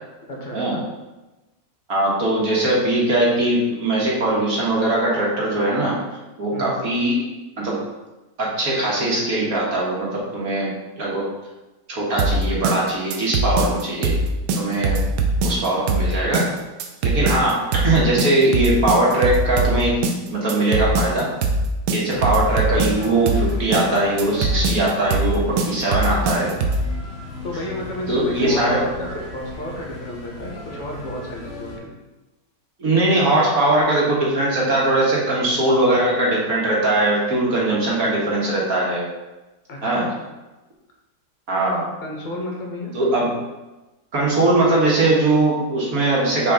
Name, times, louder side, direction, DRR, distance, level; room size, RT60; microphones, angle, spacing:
voice 1, 0.3-0.8 6.5-6.8 22.1-22.4 27.4-31.9 39.7-40.0 42.0-42.9, left 1 dB, 30° left, -2 dB, 1.2 m, -32 dB
voice 2, 1.9-6.0 6.4-7.2 7.6-7.8 8.4-11.3 11.9-14.2 14.5-15.0 15.4-16.5 17.0-20.0 20.3-21.3 21.9-26.5 28.1-28.8 32.8-39.0 39.8-40.1 41.5-42.0 42.9-43.4 44.1-46.5, right 2 dB, 60° right, -4 dB, 1.9 m, -20 dB
sound 1, 12.2-26.9, right 2 dB, 85° right, 1.3 m, -21 dB
sound 2, 22.1-31.8, left 2 dB, 60° left, 2.1 m, -37 dB
6.1 x 4.4 x 3.8 m, 1.1 s
omnidirectional pair, 1.7 m